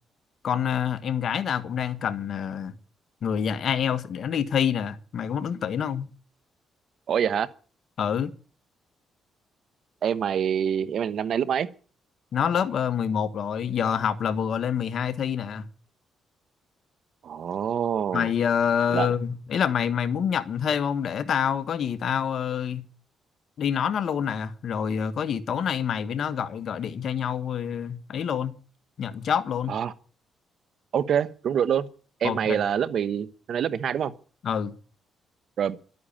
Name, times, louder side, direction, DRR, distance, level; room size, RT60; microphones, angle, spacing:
voice 1, 0.4-2.7 3.2-6.1 8.0-8.3 12.3-15.7 18.1-22.8 23.6-28.5 29.0-29.7 32.2-32.6 34.4-34.7, left 8 dB, 60° left, 1.4 m, -27 dB
voice 2, 7.1-7.5 10.0-11.7 17.2-18.3 18.9-19.1 29.7-29.9 30.9-31.9 32.2-34.1 35.6-35.8, right 8 dB, 65° right, 1.1 m, -26 dB
12.0 x 9.4 x 8.9 m
cardioid pair, 90°, 0 cm